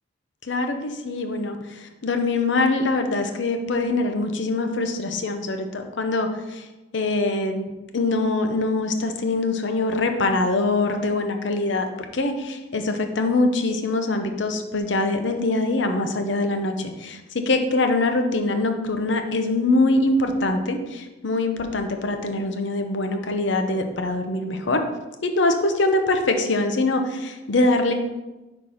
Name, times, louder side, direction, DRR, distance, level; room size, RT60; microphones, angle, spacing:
voice 1, 0.4-6.7 6.9-7.7 7.9-11.9 12.1-24.8 25.2-27.9, left 2 dB, 65° left, 6 dB, 0.7 m, -23 dB
5.7 x 4.4 x 4.9 m, 1.1 s
head